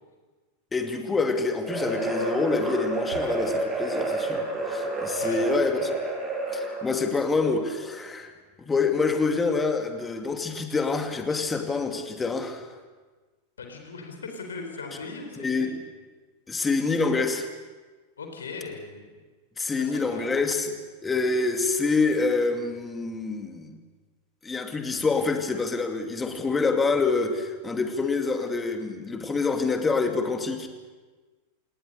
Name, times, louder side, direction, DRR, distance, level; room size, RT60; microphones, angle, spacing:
voice 1, 0.7-5.9 6.5-8.3 8.6-12.7 15.4-15.7 16.5-17.5 19.6-20.8 21.0-23.7 24.4-30.7, left 4 dB, 15° left, 5 dB, 2.5 m, -26 dB
sound 1, 1.6-7.1, right 2 dB, 15° right, 6.8 m, -29 dB
voice 2, 13.6-15.8 18.2-19.1 19.7-20.3 25.0-25.1, left 4 dB, 70° left, 4 dB, 4.2 m, -39 dB
29.0 x 18.5 x 6.8 m, 1.3 s
figure-of-eight pair, 90°, 0 cm